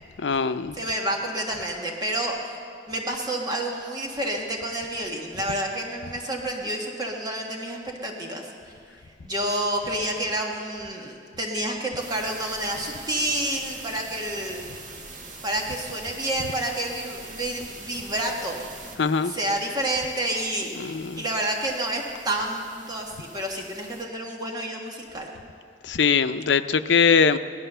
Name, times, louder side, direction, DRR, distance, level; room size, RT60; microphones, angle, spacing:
voice 1, 0.2-0.8 19.0-19.3 20.8-21.2 25.8-27.4, left 6 dB, 90° left, 11 dB, 0.6 m, -21 dB
voice 2, 0.7-2.5 2.9-8.5 9.2-14.6 15.4-18.7 19.2-25.3, right 1 dB, 25° right, 0 dB, 1.5 m, -29 dB
sound 1, 12.0-24.0, right 3 dB, 45° right, 1.7 m, -44 dB
17.5 x 12.5 x 6.7 m, 2.4 s
head